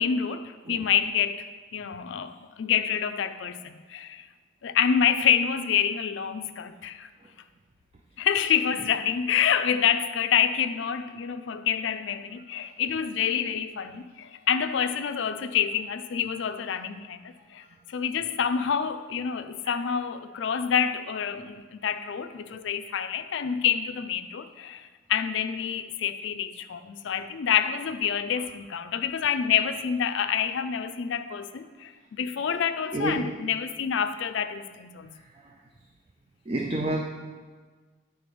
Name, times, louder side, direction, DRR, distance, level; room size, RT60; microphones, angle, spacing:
voice 1, 0.0-1.5 1.7-4.3 4.6-7.1 8.2-35.2, left 8 dB, 65° left, 0.4 m, -27 dB
voice 2, 32.9-33.4 35.4-35.5 36.5-37.0, right 1 dB, 30° right, 0.4 m, -30 dB
9.1 x 3.9 x 5.1 m
head